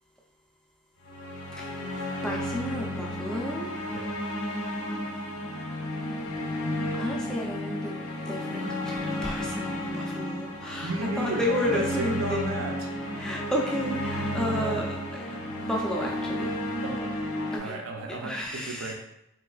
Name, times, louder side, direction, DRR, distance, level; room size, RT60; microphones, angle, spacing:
sound 1, 1.0-17.6, left 1 dB, 80° left, 0.6 m, -32 dB
voice 1, 1.5-1.9 2.2-3.8 6.9-8.0 8.3-12.5 13.2-15.2 15.6-16.5 17.5-17.8 18.2-18.9, left 1 dB, 5° left, -2 dB, 0.5 m, -32 dB
voice 2, 10.8-12.9 14.1-14.9 16.8-17.2 17.6-18.9, right 2 dB, 65° right, 2 dB, 0.6 m, -34 dB
3.4 x 3.0 x 2.4 m, 0.83 s
head